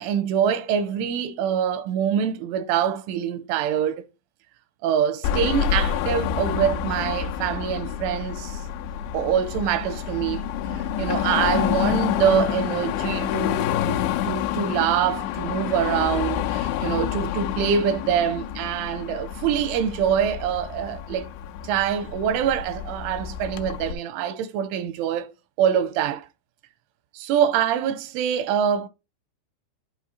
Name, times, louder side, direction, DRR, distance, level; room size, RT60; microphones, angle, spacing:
voice 1, 0.0-4.0 4.8-8.6 9.1-10.4 10.7-21.3 21.6-25.3 25.6-26.3 27.1-28.9, right 9 dB, 85° right, 3.1 m, -25 dB
Car passing by / Traffic noise roadway noise / Engine, 5.2-23.9, left 10 dB, 85° left, 2.8 m, -28 dB
11.5 x 4.6 x 2.7 m
omnidirectional pair, 5.6 m